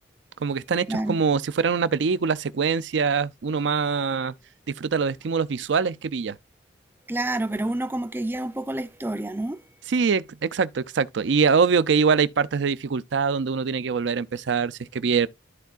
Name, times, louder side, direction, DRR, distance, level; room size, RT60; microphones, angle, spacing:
voice 1, 0.4-4.3 4.8-6.4 9.9-15.3, right 5 dB, 75° right, 0.5 m, -23 dB
voice 2, 7.1-9.6, right 1 dB, 10° right, 0.5 m, -28 dB
13.0 x 4.5 x 2.4 m
head